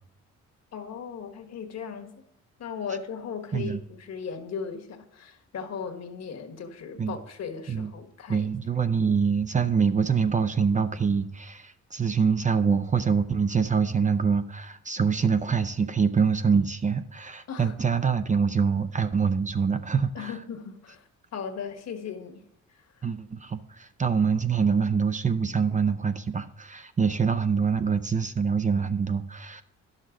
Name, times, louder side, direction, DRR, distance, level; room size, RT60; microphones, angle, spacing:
voice 1, 0.7-2.1 2.6-8.5 17.5-17.7 20.1-21.0 21.3-22.4, left 6 dB, 60° left, 1.4 m, -37 dB
voice 2, 8.3-20.4 23.0-29.6, right 6 dB, 25° right, 0.5 m, -25 dB
10.5 x 6.5 x 3.7 m
cardioid pair, 90°, 30 cm